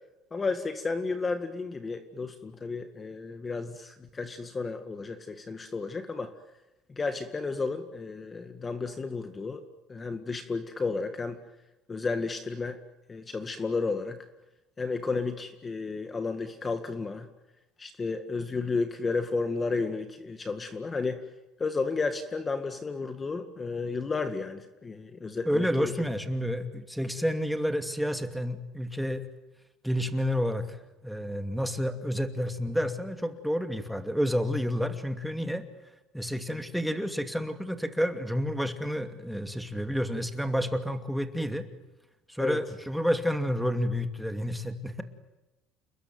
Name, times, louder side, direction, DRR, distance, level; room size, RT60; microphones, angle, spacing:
voice 1, 0.3-6.3 6.9-9.6 9.9-11.4 11.9-12.8 13.1-14.2 14.8-17.3 17.8-21.3 21.6-25.9 42.4-42.6, left 4 dB, 20° left, 8 dB, 2.0 m, -32 dB
voice 2, 25.5-29.2 29.8-30.8 31.0-35.6 36.1-41.7 42.3-45.0, equal, ahead, 7 dB, 2.6 m, -30 dB
30.0 x 21.0 x 9.4 m, 1.0 s
cardioid pair, 125°, 0 cm